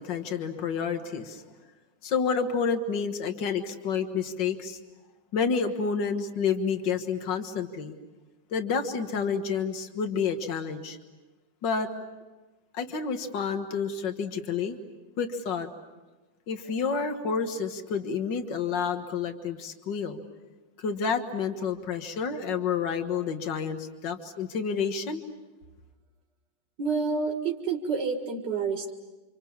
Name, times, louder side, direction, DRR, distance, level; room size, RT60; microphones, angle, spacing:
voice 1, 0.0-1.4 2.0-4.8 5.3-7.9 8.5-11.0 11.6-11.9 12.7-14.8 15.2-15.7 16.5-20.2 20.8-25.2, left 6 dB, 70° left, 6 dB, 2.2 m, -29 dB
voice 2, 26.8-28.9, right 5 dB, 65° right, 2 dB, 2.6 m, -28 dB
29.5 x 26.5 x 7.3 m, 1.2 s
omnidirectional pair, 2.0 m